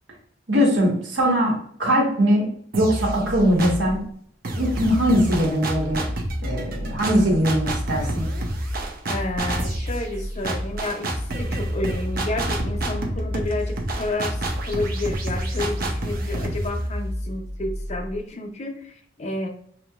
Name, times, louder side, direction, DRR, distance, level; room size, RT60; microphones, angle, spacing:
voice 1, 0.5-4.0 4.5-6.0 6.4-8.3, equal, 75° right, -1 dB, 1.4 m, -21 dB
sound 1, 2.7-4.0 4.4-18.1, right 1 dB, 50° right, 0.7 m, -28 dB
voice 2, 9.1-19.5, left 2 dB, 35° left, 4 dB, 0.6 m, -30 dB
5.6 x 3.0 x 2.4 m, 0.63 s
head